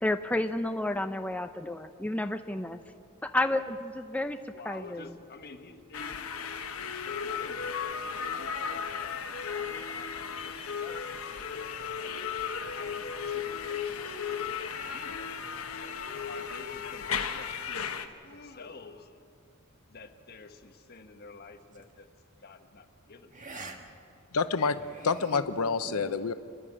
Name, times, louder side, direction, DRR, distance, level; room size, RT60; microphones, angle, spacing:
voice 1, 0.0-2.8 3.2-5.1 25.3-25.4 25.9-26.0, left 1 dB, 5° left, 7 dB, 0.5 m, -31 dB
voice 2, 4.5-10.1 10.4-12.4 12.6-15.3 16.3-19.2 19.9-22.1 22.4-23.7, left 3 dB, 45° left, 6 dB, 1.4 m, -50 dB
sound 1, 5.9-18.1, left 6 dB, 75° left, 1.2 m, -35 dB
sound 2, 21.7-22.0 23.3-23.8 24.1-24.2 24.7-25.4, right 3 dB, 35° right, 1.7 m, -45 dB
voice 3, 24.3-24.8 25.0-26.3, left 4 dB, 90° left, 11 dB, 0.7 m, -28 dB
29.5 x 11.0 x 8.7 m, 2.4 s
head